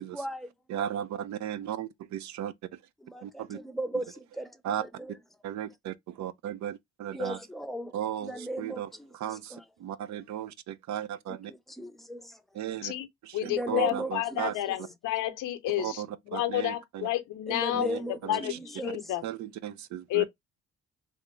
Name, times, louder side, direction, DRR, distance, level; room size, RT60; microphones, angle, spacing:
voice 1, 0.1-0.5 3.0-5.1 7.1-7.9 8.2-9.6 11.3-12.4 13.4-14.4 17.5-19.0, right 1 dB, ahead, 0.5 m, -37 dB
voice 2, 0.7-2.8 3.2-3.6 4.6-4.8 5.4-7.4 7.9-11.5 12.5-12.9 13.2-14.5 15.8-17.1 17.7-18.6 19.2-20.3, right 10 dB, 65° right, 0.5 m, -36 dB
voice 3, 13.3-19.2 20.1-20.3, left 14 dB, 85° left, 0.7 m, -30 dB
3.5 x 2.5 x 2.9 m
cardioid pair, 90°, 30 cm